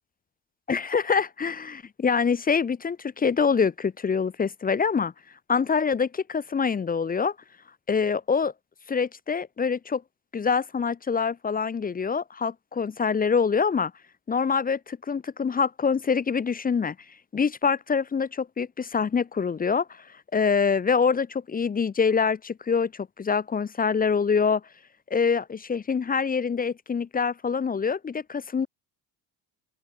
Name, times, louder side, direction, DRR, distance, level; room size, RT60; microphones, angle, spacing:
voice 1, 0.7-5.1 5.5-7.3 7.9-8.5 8.9-10.0 10.3-13.9 14.3-17.0 17.3-19.9 20.3-24.6 25.1-28.7, left 5 dB, 20° left, 0.6 m, -25 dB
open air
cardioid pair, 95°, 42 cm